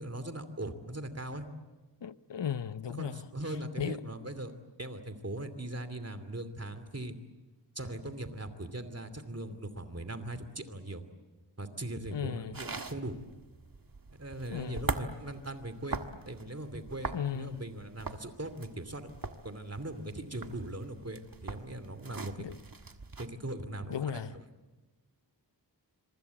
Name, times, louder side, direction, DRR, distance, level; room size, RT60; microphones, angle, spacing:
voice 1, 0.0-1.5 2.9-4.5 4.8-7.1 7.7-11.0 11.6-13.2 14.2-16.0 16.3-22.5 23.2-24.4, right 1 dB, 35° right, 2.7 m, -40 dB
voice 2, 2.0-3.2 3.8-4.0 12.1-12.6 14.5-14.9 17.1-17.6 22.4-22.5 23.9-24.3, left 9 dB, 80° left, 0.8 m, -35 dB
sound 1, 12.5-23.3, right 3 dB, 50° right, 1.6 m, -41 dB
26.0 x 24.5 x 8.4 m
wide cardioid pair, 60°, 43 cm